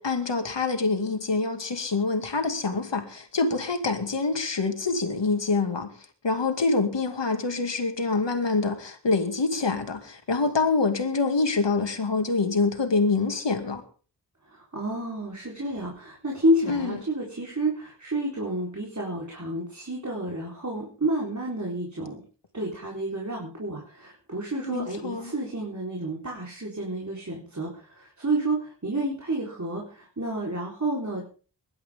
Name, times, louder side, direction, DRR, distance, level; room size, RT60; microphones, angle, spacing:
voice 1, 0.0-5.9 6.2-13.8 16.7-17.0 24.7-25.3, left 3 dB, 80° left, 2.4 m, -26 dB
voice 2, 14.5-22.2 22.5-31.2, right 1 dB, 40° right, 4.3 m, -30 dB
23.5 x 12.0 x 3.7 m
wide cardioid pair, 60°, 42 cm